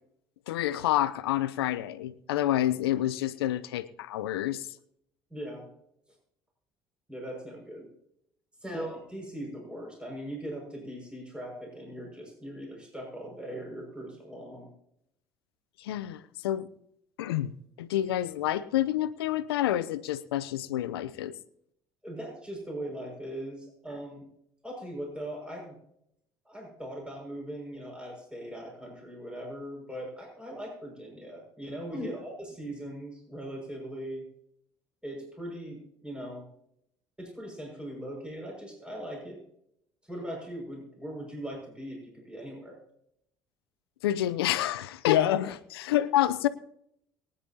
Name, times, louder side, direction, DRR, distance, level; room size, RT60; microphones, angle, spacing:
voice 1, 0.5-4.6 15.8-16.7 17.2-17.5 17.8-21.3 44.0-46.5, left 13 dB, 80° left, 15 dB, 0.7 m, -28 dB
voice 2, 5.3-5.7 7.1-7.9 8.6-14.7 22.0-24.3 24.6-25.7 26.4-34.3 35.0-36.4 37.2-39.4 40.0-42.8, right 1 dB, 10° right, -1 dB, 6.1 m, -40 dB
23.0 x 10.0 x 2.9 m, 0.74 s
hypercardioid pair, 60°, 13 cm